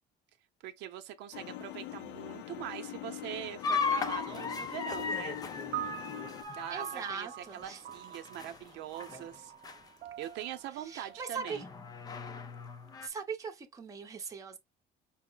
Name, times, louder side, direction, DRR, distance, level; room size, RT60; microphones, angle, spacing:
voice 1, 0.6-5.4 6.5-9.5 10.2-11.6, right 11 dB, 80° right, 0.7 m, -42 dB
sound 1, 1.3-6.4, left 13 dB, 80° left, 0.6 m, -43 dB
sound 2, 3.6-8.7 9.0-9.3 9.6-9.8 10.4-10.5 11.5-13.1, left 5 dB, 20° left, 0.5 m, -36 dB
sound 3, 5.7-12.2, right 14 dB, 45° right, 0.4 m, -45 dB
voice 2, 6.7-7.8 10.9-11.6 13.0-14.6, right 5 dB, 20° right, 0.8 m, -40 dB
5.5 x 2.1 x 3.8 m
cardioid pair, 165°, 18 cm